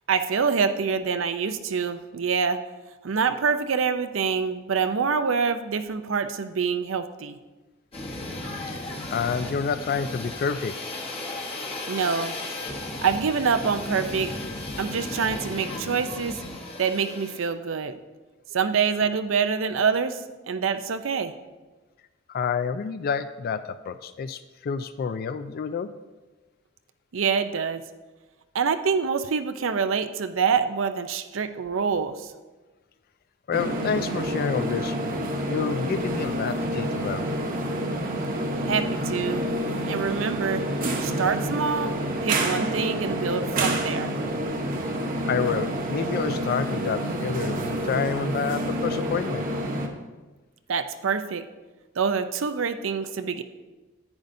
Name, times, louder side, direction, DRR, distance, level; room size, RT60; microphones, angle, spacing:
voice 1, 0.1-2.6 3.0-7.4 11.9-12.4 13.0-14.3 14.8-16.4 16.8-18.0 18.5-21.3 27.1-27.8 28.5-32.3 38.6-39.4 39.9-40.6 41.0-42.0 42.2-44.1 50.7-51.5 52.0-53.4, right 6 dB, 70° right, 10 dB, 0.5 m, -26 dB
sound 1, 7.9-17.5, left 2 dB, 30° left, 1.1 m, -35 dB
voice 2, 9.1-10.8 22.3-25.9 33.5-35.0 35.4-37.3 45.2-49.5, left 6 dB, 50° left, 12 dB, 0.3 m, -29 dB
sound 2, 33.5-49.9, right 1 dB, 45° right, 1.0 m, -28 dB
10.5 x 9.7 x 2.6 m, 1.2 s
head